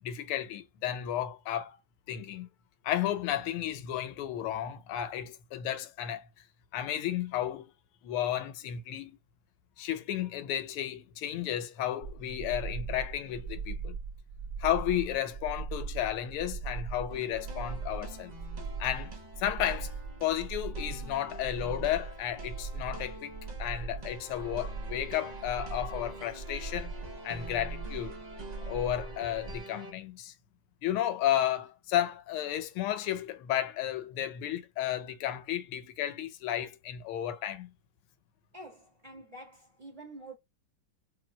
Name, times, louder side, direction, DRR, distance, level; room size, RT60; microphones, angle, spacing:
voice 1, 0.0-1.8 2.1-2.5 2.8-6.2 6.7-7.7 8.0-9.2 9.8-14.0 14.6-18.3 18.8-19.9 20.2-26.9 27.2-28.2 28.7-30.3 30.8-37.7, left 11 dB, 85° left, 1.6 m, -33 dB
sound 1, 12.0-29.6, right 4 dB, 10° left, 0.7 m, -40 dB
sound 2, 17.1-29.9, right 1 dB, 75° right, 0.3 m, -47 dB
voice 2, 38.5-40.4, right 2 dB, 20° right, 1.5 m, -47 dB
5.0 x 2.9 x 2.2 m
omnidirectional pair, 2.4 m